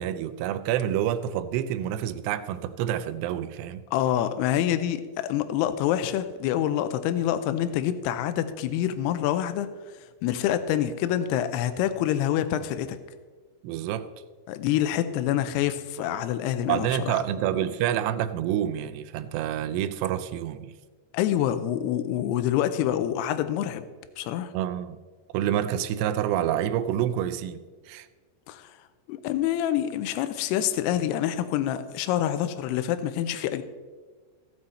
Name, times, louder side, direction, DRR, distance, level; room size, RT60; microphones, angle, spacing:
voice 1, 0.0-3.8 13.6-14.1 16.7-20.7 24.5-25.0 25.3-28.1, right 11 dB, 80° right, 11 dB, 2.6 m, -28 dB
voice 2, 3.9-9.7 10.2-13.0 14.5-17.2 17.5-17.6 21.1-23.9 24.2-24.5 28.5-28.7 29.1-33.6, left 11 dB, 80° left, 10 dB, 2.5 m, -26 dB
15.5 x 7.8 x 4.2 m, 1.4 s
omnidirectional pair, 5.0 m